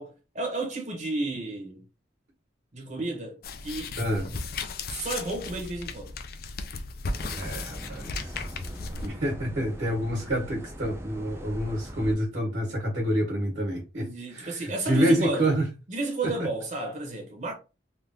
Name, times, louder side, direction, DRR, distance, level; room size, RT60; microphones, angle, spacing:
voice 1, 0.0-1.8 2.7-4.0 4.9-6.1 14.0-15.5 15.9-17.5, right 2 dB, 40° right, 0.9 m, -32 dB
sound 1, 3.4-9.1, left 3 dB, 55° left, 0.4 m, -36 dB
voice 2, 4.0-4.4 7.2-8.4 9.0-15.7 16.2-16.5, right 1 dB, 75° right, 1.4 m, -28 dB
sound 2, 7.1-12.1, equal, 15° right, 0.4 m, -41 dB
3.3 x 2.5 x 2.6 m
head